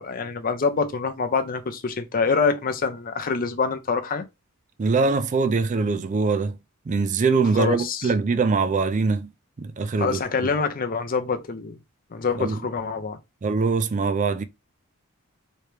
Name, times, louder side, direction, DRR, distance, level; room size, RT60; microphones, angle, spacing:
voice 1, 0.0-4.2 7.5-8.1 10.0-11.8 12.1-13.2, left 5 dB, 40° left, 0.5 m, -25 dB
voice 2, 4.8-6.6 6.9-9.3 9.6-10.2 12.4-12.6 13.4-14.4, right 4 dB, 35° right, 0.3 m, -22 dB
3.2 x 2.9 x 3.2 m
head